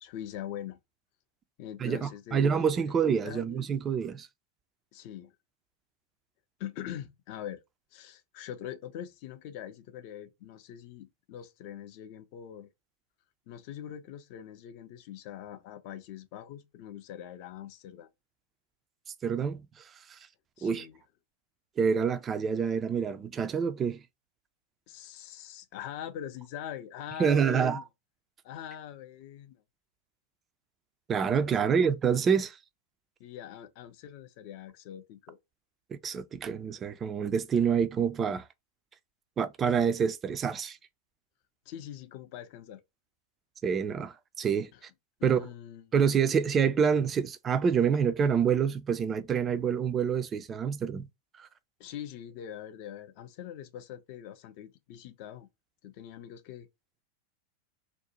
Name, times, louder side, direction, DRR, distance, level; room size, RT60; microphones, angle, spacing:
voice 1, 0.0-0.8 1.6-2.9 3.2-3.6 4.9-5.3 6.6-7.6 7.9-12.7 13.5-18.1 20.6-21.0 24.9-27.9 28.4-29.6 31.6-31.9 33.2-35.4 41.7-42.8 44.7-44.8 45.2-45.9 51.8-55.5 55.8-56.7, left 10 dB, 45° left, 0.4 m, -43 dB
voice 2, 1.8-4.3 19.2-19.6 20.1-20.2 20.6-20.9 21.8-24.0 27.2-27.8 31.1-32.6 35.9-38.4 39.4-40.8 43.6-44.7 45.2-45.5 45.9-51.1 51.4-51.5, right 7 dB, 25° right, 0.3 m, -27 dB
2.5 x 2.1 x 2.8 m
figure-of-eight pair, 90°, 0 cm